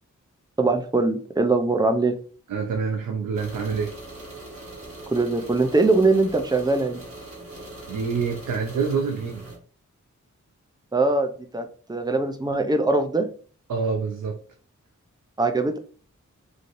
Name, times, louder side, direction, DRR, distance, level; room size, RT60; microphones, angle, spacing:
voice 1, 0.6-2.2 5.1-7.0 10.9-13.3 15.4-15.8, right 3 dB, 15° right, 0.5 m, -22 dB
voice 2, 2.5-4.0 7.9-9.5 13.7-14.4, right 5 dB, 85° right, 0.5 m, -27 dB
sound 1, 3.3-9.6, right 2 dB, 45° right, 1.3 m, -41 dB
3.2 x 2.7 x 2.5 m
wide cardioid pair, 60°, 31 cm